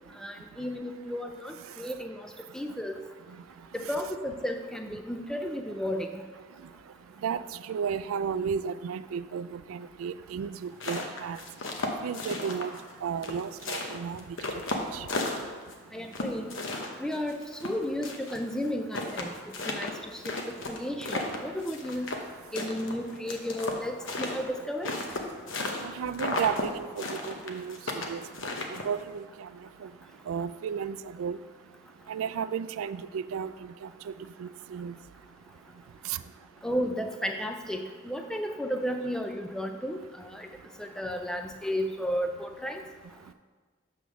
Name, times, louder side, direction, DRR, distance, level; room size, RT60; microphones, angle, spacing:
voice 1, 0.2-2.3 2.5-3.0 3.7-6.2 15.9-16.5 17.0-19.3 19.7-20.2 20.7-22.1 22.5-24.9 36.6-40.5 40.8-42.8, equal, 5° left, 4 dB, 0.4 m, -33 dB
voice 2, 7.7-11.4 12.0-12.7 13.0-14.2 14.7-15.1 25.8-28.2 28.7-29.5 29.8-29.9 30.3-31.4 32.1-34.1 34.4-34.9 36.0-36.2, right 7 dB, 85° right, 14 dB, 0.3 m, -33 dB
sound 1, 10.6-12.9 13.2-15.7 16.1-18.4 18.6-18.7 18.9-22.3 22.5-25.9 26.1-26.7 27.0-29.0, left 2 dB, 70° left, 0.9 m, -34 dB
7.8 x 3.4 x 6.1 m, 1.4 s
head